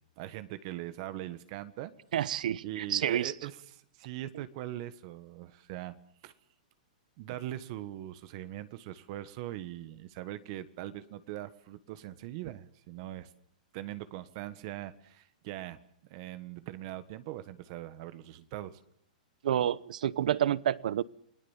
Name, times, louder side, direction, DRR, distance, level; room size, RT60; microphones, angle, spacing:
voice 1, 0.0-1.9 2.6-6.0 6.2-6.3 7.2-13.3 13.7-15.8 16.1-18.8, right 14 dB, 45° right, 13 dB, 1.4 m, -41 dB
voice 2, 2.1-3.3 19.4-21.0, right 11 dB, 70° right, 20 dB, 0.9 m, -29 dB
29.0 x 19.5 x 7.3 m, 0.71 s
hypercardioid pair, 150°, 4 cm